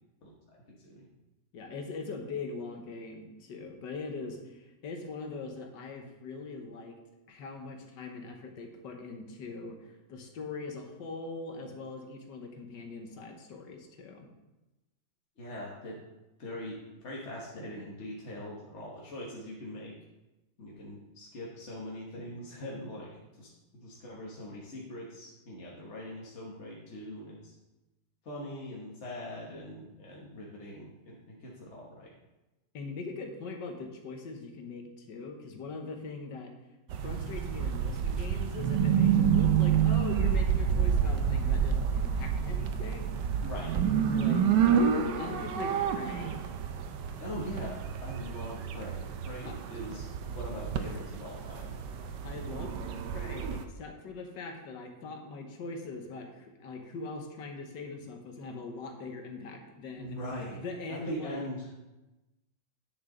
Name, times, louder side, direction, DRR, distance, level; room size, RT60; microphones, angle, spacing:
voice 1, 0.7-1.1 15.4-16.0 16.4-16.8 17.0-19.9 20.6-23.1 23.4-23.5 23.8-27.5 28.2-32.1 43.4-43.7 47.2-47.7 48.0-51.7 60.0-60.6 60.9-61.7, left 1 dB, 45° left, -4 dB, 1.4 m, -42 dB
voice 2, 1.5-7.0 7.3-14.3 32.7-36.5 37.0-43.4 44.1-46.4 49.5-49.6 52.2-52.7 53.1-60.2 60.5-61.4, left 3 dB, 80° left, 4 dB, 1.8 m, -41 dB
sound 1, 36.9-53.6, right 8 dB, 85° right, 1.4 m, -29 dB
9.6 x 6.7 x 3.8 m, 1.0 s
omnidirectional pair, 1.9 m